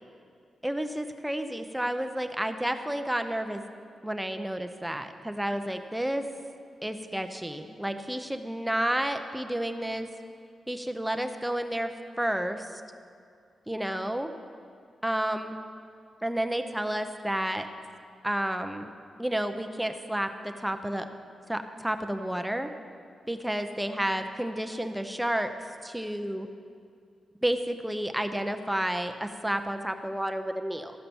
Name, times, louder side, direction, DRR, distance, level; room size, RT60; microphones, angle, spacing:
voice 1, 0.6-3.6 4.0-6.2 6.8-10.1 10.7-12.8 13.7-14.3 15.0-15.6 16.2-17.7 18.2-18.9 19.2-21.1 21.5-22.7 23.3-25.5 25.8-26.5 27.4-30.9, right 1 dB, 5° right, 7 dB, 0.6 m, -31 dB
14.0 x 5.7 x 7.0 m, 2.3 s
cardioid pair, 100°, 0 cm